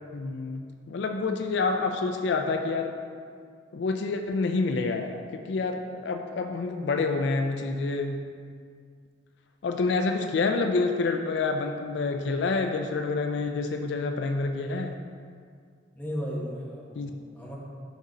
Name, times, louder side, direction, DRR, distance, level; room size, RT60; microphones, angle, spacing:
voice 1, 0.1-2.9 3.7-8.3 9.6-14.9 17.0-17.1, left 3 dB, 70° left, 5 dB, 0.4 m, -28 dB
voice 2, 15.9-17.6, equal, 10° left, -5 dB, 1.0 m, -35 dB
6.1 x 4.0 x 5.0 m, 2.1 s
head